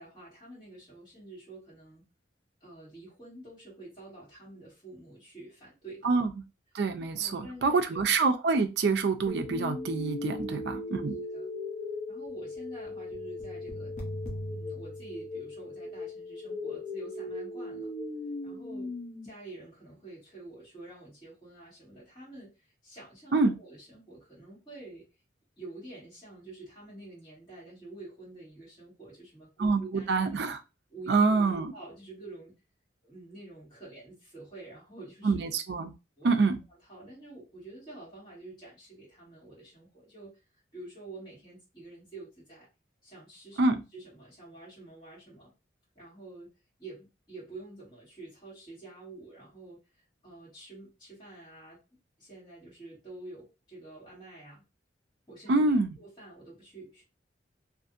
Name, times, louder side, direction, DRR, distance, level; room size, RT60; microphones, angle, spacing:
voice 1, 0.0-2.1 2.6-6.1 7.1-8.0 11.2-11.5 12.1-14.0 14.5-17.9 18.4-18.9 19.2-25.1 25.6-30.4 30.9-32.5 33.0-35.5 36.2-36.4 36.9-40.4 40.7-42.7 43.0-45.5 45.9-46.5 46.8-51.8 52.2-54.6 55.3-57.0, right 2 dB, 25° left, 1.6 m, -48 dB
voice 2, 6.7-11.1 23.3-23.5 29.6-30.6 31.1-31.7 35.2-35.9 36.2-36.6 43.6-43.8 55.5-55.9, right 3 dB, 60° right, 0.4 m, -26 dB
sound 1, 9.3-19.3, left 2 dB, 40° left, 0.7 m, -38 dB
2.6 x 2.5 x 2.5 m
head